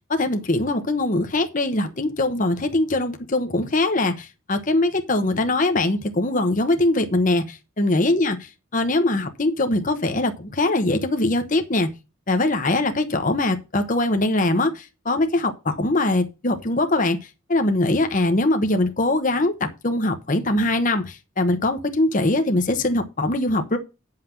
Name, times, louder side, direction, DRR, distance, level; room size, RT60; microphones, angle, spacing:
voice 1, 0.1-8.4 8.7-11.9 12.3-17.2 17.5-23.8, left 2 dB, 40° left, 6 dB, 1.0 m, -22 dB
9.5 x 5.8 x 5.9 m, 0.28 s
head